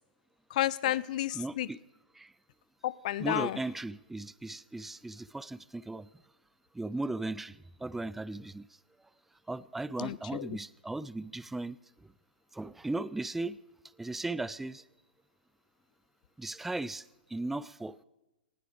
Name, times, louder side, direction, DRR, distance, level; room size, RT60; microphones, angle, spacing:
voice 1, 0.5-1.7 2.8-3.6 10.0-10.5, left 14 dB, 50° left, 0.5 m, -31 dB
voice 2, 1.3-1.8 2.2-2.3 3.2-6.1 6.7-8.7 9.5-11.8 12.5-13.6 14.0-14.8 16.4-17.0 17.3-18.0, right 2 dB, 5° right, 0.4 m, -37 dB
19.5 x 17.0 x 3.4 m
figure-of-eight pair, 115°, 5 cm